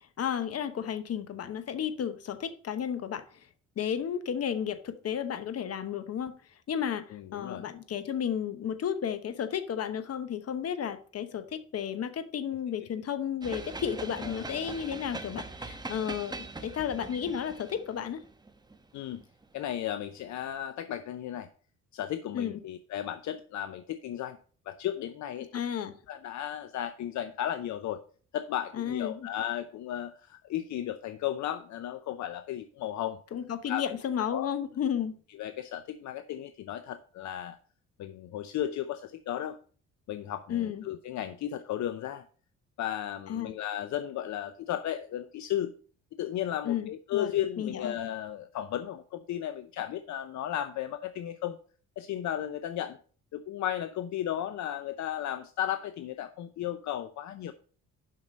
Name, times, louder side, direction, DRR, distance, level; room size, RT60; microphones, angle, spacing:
voice 1, 0.2-3.2 3.8-6.3 6.7-7.1 7.3-18.2 22.3-22.6 25.5-25.9 28.7-29.3 33.3-35.1 40.5-40.8 43.3-43.5 46.6-47.3 47.6-48.0, left 8 dB, 55° left, 11 dB, 1.0 m, -33 dB
voice 2, 7.1-7.6 14.2-14.5 18.9-19.2 19.5-21.5 21.9-24.4 24.7-25.5 26.1-28.0 28.3-33.2 33.7-33.8 34.3-34.5 35.4-37.6 38.0-39.6 40.1-42.2 42.8-45.7 46.2-51.6 52.0-53.0 53.3-57.5, left 11 dB, 70° left, 10 dB, 0.6 m, -34 dB
sound 1, 13.4-19.7, right 3 dB, 15° right, 0.9 m, -42 dB
7.6 x 5.9 x 5.2 m, 0.43 s
cardioid pair, 90°, 30 cm